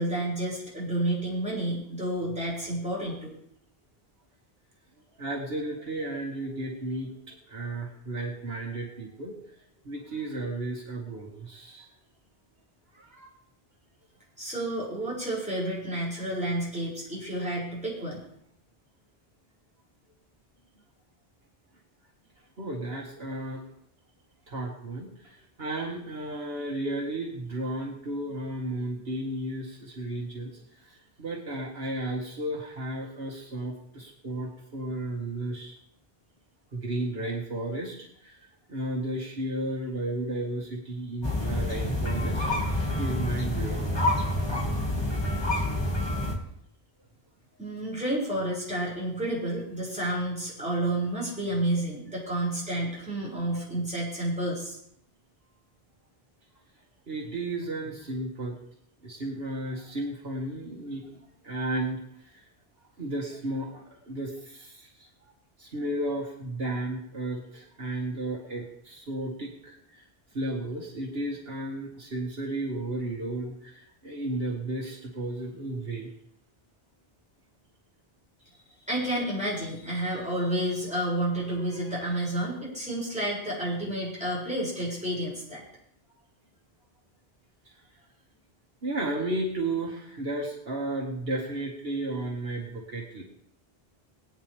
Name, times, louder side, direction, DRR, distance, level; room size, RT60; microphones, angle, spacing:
voice 1, 0.0-3.3 14.4-18.2 47.6-54.8 78.8-85.6, right 1 dB, 5° right, -6 dB, 6.3 m, -30 dB
voice 2, 5.2-9.5 9.8-11.9 12.9-13.3 22.6-23.7 24.5-35.8 36.7-44.1 57.1-58.6 59.0-62.4 63.0-65.1 65.6-70.0 70.3-76.1 87.7-87.8 88.8-93.2, right 1 dB, 70° right, -2 dB, 2.1 m, -34 dB
sound 1, 41.2-46.3, left 1 dB, 25° left, 2.1 m, -28 dB
21.5 x 9.3 x 3.5 m, 0.70 s
omnidirectional pair, 1.0 m